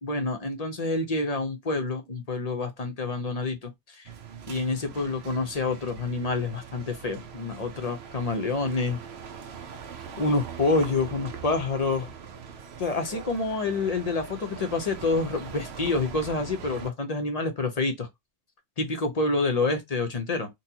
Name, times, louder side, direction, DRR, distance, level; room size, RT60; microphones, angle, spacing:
voice 1, 0.0-4.0 4.5-9.0 10.2-12.1 12.8-18.1 18.8-20.5, left 3 dB, 40° left, 0.7 m, -27 dB
sound 1, 4.1-16.9, right 6 dB, 65° right, 0.9 m, -42 dB
4.0 x 2.3 x 2.7 m
omnidirectional pair, 1.2 m